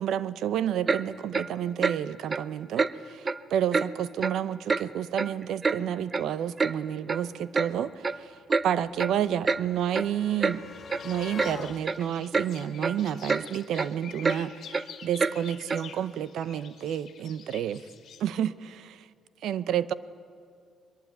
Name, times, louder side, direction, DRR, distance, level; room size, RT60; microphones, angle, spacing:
voice 1, 0.0-8.4 8.6-10.6 11.0-17.8 18.2-19.1 19.4-19.9, right 10 dB, 80° right, 15 dB, 0.8 m, -30 dB
Clock, 0.9-1.0 1.3-1.5 1.8-2.0 2.3-2.4 2.8-2.9 3.2-3.4 3.7-3.9 4.2-4.4 4.7-4.8 5.2-5.8 6.1-6.2 6.6-6.7 7.1-7.2 7.5-7.7 8.0-8.2 8.5-8.7 9.0-9.1 9.4-9.6 9.9-10.1 10.4-10.6 10.9-11.0 11.4-11.5 11.8-12.0 12.3-12.5 12.8-13.0 13.3-13.4 13.7-13.9 14.2-14.4 14.7-14.8 15.2-15.3 15.7-15.8, right 4 dB, 35° right, 0.8 m, -26 dB
sound 1, 7.5-13.7 14.9-15.0 15.3-15.4, left 6 dB, 45° left, 0.9 m, -46 dB
sound 2, 10.7-18.2, left 8 dB, 65° left, 2.3 m, -48 dB
23.0 x 21.5 x 9.2 m, 2.3 s
cardioid pair, 90°, 0 cm